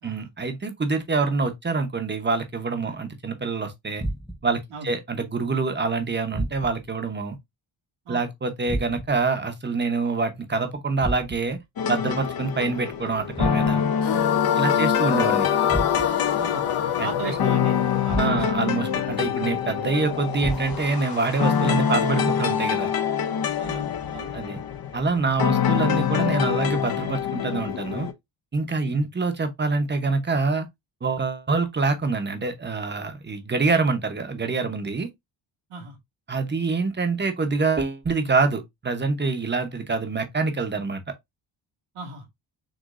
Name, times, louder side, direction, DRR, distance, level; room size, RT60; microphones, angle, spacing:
voice 1, 0.0-4.0 4.4-7.4 8.1-11.6 11.9-13.8 14.6-15.5 17.0-17.3 18.1-22.9 24.3-24.6 24.9-28.1 28.5-30.7 31.0-35.1 36.3-41.0, right 4 dB, 20° right, 0.9 m, -26 dB
sound 1, 4.0-4.6 6.3-7.0 8.7-9.3 11.0-11.6 13.3-14.0 15.7-16.3 18.1-18.7 20.4-21.0, right 1 dB, ahead, 0.6 m, -32 dB
sound 2, 11.8-28.1, left 8 dB, 45° left, 0.7 m, -26 dB
sound 3, 14.0-19.2, left 10 dB, 75° left, 0.9 m, -25 dB
voice 2, 16.3-16.7 17.0-18.7 23.6-24.4 28.8-29.1 35.7-36.0 41.9-42.3, right 5 dB, 80° right, 1.9 m, -37 dB
6.3 x 3.2 x 2.5 m
wide cardioid pair, 145°, 49 cm